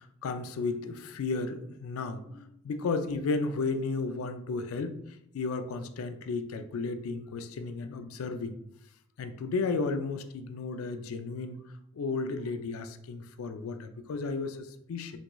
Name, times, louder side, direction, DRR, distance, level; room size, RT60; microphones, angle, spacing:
voice 1, 0.0-8.6 9.2-11.6 11.9-15.2, left 4 dB, 85° left, 9 dB, 0.3 m, -33 dB
3.5 x 2.9 x 2.2 m, 0.76 s
head